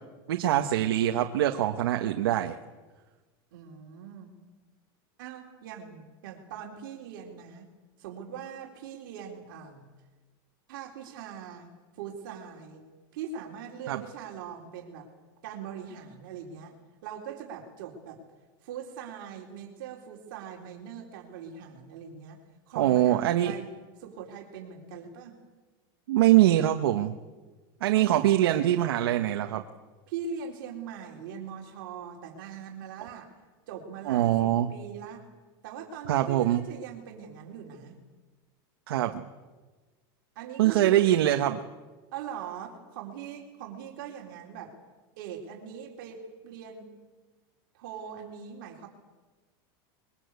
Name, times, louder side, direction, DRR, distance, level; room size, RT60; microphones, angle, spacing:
voice 1, 0.3-2.6 13.9-14.0 22.8-23.5 26.1-27.1 27.8-29.6 34.1-34.7 36.1-36.6 38.9-39.2 40.6-41.6, right 13 dB, 80° right, 5 dB, 1.4 m, -23 dB
voice 2, 3.5-4.3 5.2-7.7 8.0-9.9 10.7-11.7 11.9-12.8 13.1-15.1 15.4-16.7 17.0-18.2 18.6-22.4 22.7-23.7 24.0-25.4 28.1-28.9 30.1-33.3 33.7-35.2 35.6-38.0 40.4-41.1 42.1-44.7 45.2-46.9 47.7-48.9, right 7 dB, 60° right, 1 dB, 4.1 m, -41 dB
24.0 x 22.5 x 8.3 m, 1.3 s
supercardioid pair, 170°, 13 cm